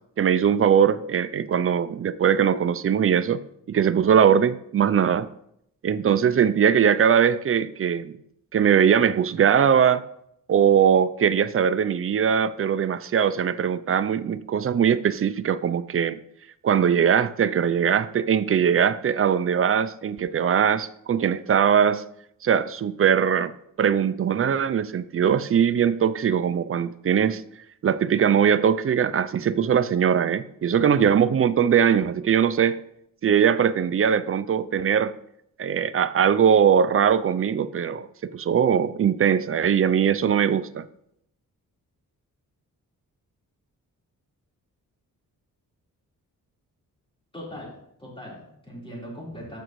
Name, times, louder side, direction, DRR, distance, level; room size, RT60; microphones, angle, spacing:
voice 1, 0.2-3.4 3.7-5.3 5.8-8.2 8.5-10.0 10.5-16.2 16.6-22.0 22.4-23.5 23.8-27.4 27.8-32.8 33.2-35.2 35.6-38.1 38.3-40.9, right 8 dB, 40° right, 15 dB, 0.4 m, -21 dB
voice 2, 47.3-47.7 48.0-49.6, equal, 15° left, -5 dB, 4.0 m, -39 dB
14.5 x 6.1 x 3.1 m, 0.75 s
wide cardioid pair, 120°, 34 cm